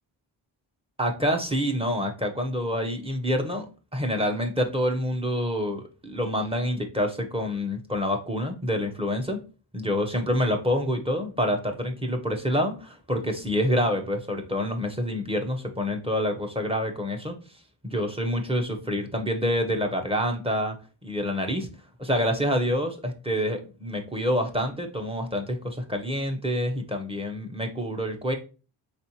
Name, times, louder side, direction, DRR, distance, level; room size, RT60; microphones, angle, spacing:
voice 1, 1.0-3.7 3.9-9.4 9.7-17.3 17.8-20.7 21.0-21.7 22.0-28.3, equal, 10° right, 4 dB, 0.7 m, -27 dB
4.2 x 3.9 x 2.9 m, 0.34 s
wide cardioid pair, 155°, 48 cm